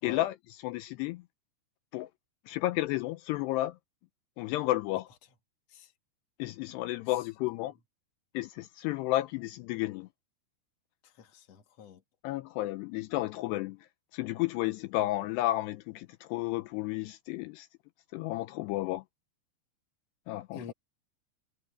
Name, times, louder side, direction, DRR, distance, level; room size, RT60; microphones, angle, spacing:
voice 1, 0.0-0.3 0.6-1.2 1.9-2.1 2.5-3.8 4.4-5.1 6.4-7.7 8.3-10.1 12.2-13.8 14.1-17.7 18.1-19.0 20.3-20.6, left 16 dB, 85° left, 2.6 m, -32 dB
voice 2, 7.1-7.7 11.0-12.0 20.5-20.7, left 8 dB, 45° left, 2.5 m, -48 dB
omnidirectional pair, 5.1 m